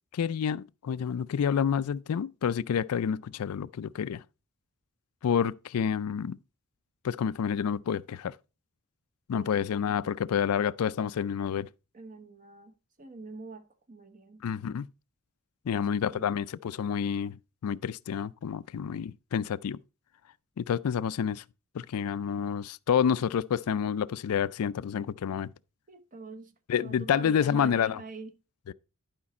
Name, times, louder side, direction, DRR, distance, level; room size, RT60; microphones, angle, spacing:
voice 1, 0.1-4.2 5.2-6.4 7.0-8.3 9.3-11.7 14.4-14.9 15.7-19.8 20.6-21.4 21.7-25.5 26.7-28.0 28.7-28.8, left 7 dB, 80° left, 0.4 m, -29 dB
voice 2, 9.4-10.0 11.9-14.4 15.7-16.3 25.9-28.3, right 3 dB, 40° right, 1.0 m, -46 dB
11.0 x 5.2 x 4.2 m
head